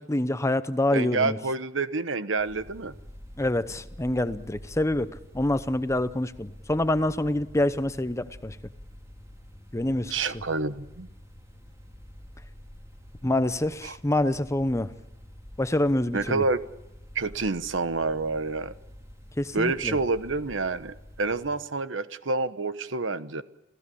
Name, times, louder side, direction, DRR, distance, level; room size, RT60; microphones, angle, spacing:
voice 1, 0.1-1.4 3.4-8.6 9.7-10.1 13.2-14.9 15.6-16.4 19.4-20.0, left 1 dB, 15° left, 13 dB, 0.8 m, -26 dB
voice 2, 0.9-2.9 10.1-11.1 13.8-14.0 16.1-16.6 17.1-18.7 19.5-23.4, right 3 dB, 80° right, 12 dB, 1.1 m, -28 dB
sound 1, 2.4-21.5, equal, 15° right, 4.9 m, -48 dB
28.5 x 16.5 x 8.5 m, 0.95 s
head